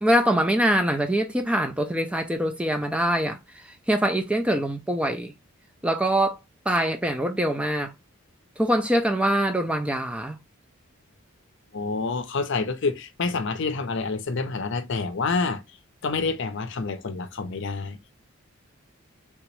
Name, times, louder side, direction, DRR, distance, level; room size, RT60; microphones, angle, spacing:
voice 1, 0.0-5.3 5.8-6.4 6.7-7.9 8.6-10.4, right 1 dB, 5° right, 0.3 m, -24 dB
voice 2, 11.7-15.6 16.0-18.0, left 4 dB, 60° left, 0.5 m, -28 dB
3.4 x 2.9 x 3.0 m
head